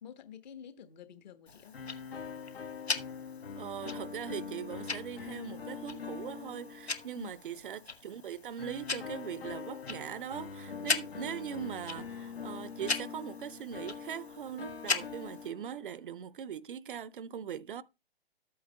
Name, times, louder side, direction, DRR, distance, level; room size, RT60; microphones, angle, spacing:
voice 1, 0.0-1.8 7.1-7.3, left 8 dB, 45° left, 1.3 m, -48 dB
Tick-tock, 1.5-15.5, left 4 dB, 85° left, 1.2 m, -40 dB
sound 1, 1.7-7.5 8.6-16.0, left 6 dB, 65° left, 1.1 m, -44 dB
voice 2, 3.6-17.8, right 9 dB, 55° right, 0.6 m, -41 dB
13.5 x 8.5 x 2.2 m
figure-of-eight pair, 120°, 31 cm